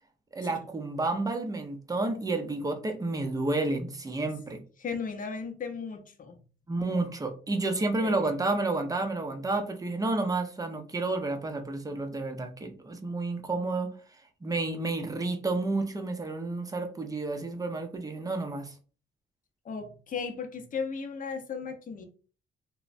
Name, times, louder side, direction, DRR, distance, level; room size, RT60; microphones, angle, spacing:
voice 1, 0.3-4.6 6.7-13.9 14.4-18.7, right 2 dB, 20° right, 6 dB, 0.5 m, -30 dB
voice 2, 4.8-6.4 7.7-8.4 19.6-22.1, left 5 dB, 45° left, 6 dB, 0.7 m, -36 dB
3.1 x 2.1 x 2.5 m, 0.38 s
cardioid pair, 90°, 20 cm